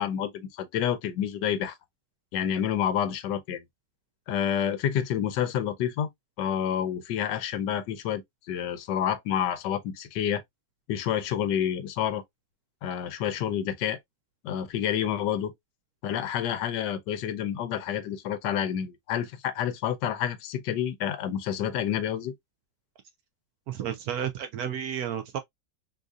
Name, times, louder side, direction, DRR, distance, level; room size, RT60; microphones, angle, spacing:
voice 1, 0.0-1.7 2.3-3.6 4.3-6.1 6.4-10.4 10.9-12.2 12.8-14.0 14.4-15.5 16.0-22.3, left 9 dB, 85° left, 1.3 m, -29 dB
voice 2, 23.7-25.4, right 9 dB, 70° right, 0.9 m, -32 dB
3.9 x 2.5 x 2.3 m
omnidirectional pair, 1.9 m